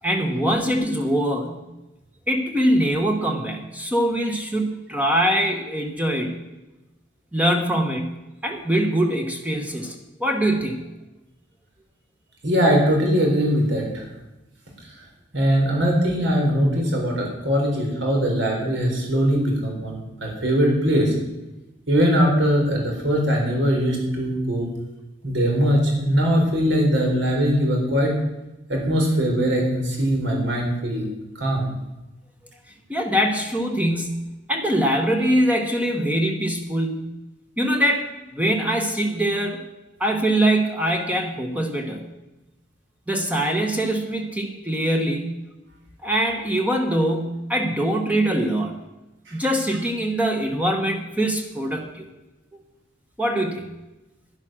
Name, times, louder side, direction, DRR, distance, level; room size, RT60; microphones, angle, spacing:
voice 1, 0.0-1.6 2.3-6.3 7.3-8.1 8.4-9.9 10.2-10.8 32.9-37.1 37.6-39.6 40.0-42.1 43.1-45.3 46.0-48.8 49.3-52.1 53.2-53.7, right 1 dB, 5° right, 3 dB, 1.1 m, -23 dB
voice 2, 12.4-14.1 15.0-15.1 15.3-21.1 21.9-24.7 25.2-28.2 28.7-31.1 31.4-31.7 49.3-49.4, equal, 65° right, 0 dB, 4.0 m, -21 dB
10.5 x 10.5 x 6.2 m, 1.0 s
head